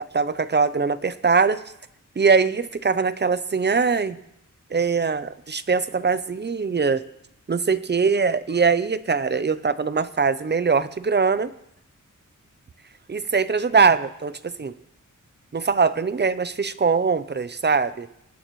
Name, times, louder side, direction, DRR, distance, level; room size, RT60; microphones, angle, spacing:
voice 1, 0.1-1.6 2.2-4.2 4.7-7.0 7.5-11.5 13.1-14.7 15.5-18.1, right 5 dB, 35° right, 14 dB, 0.7 m, -22 dB
26.5 x 11.5 x 3.2 m, 0.78 s
wide cardioid pair, 120°, 31 cm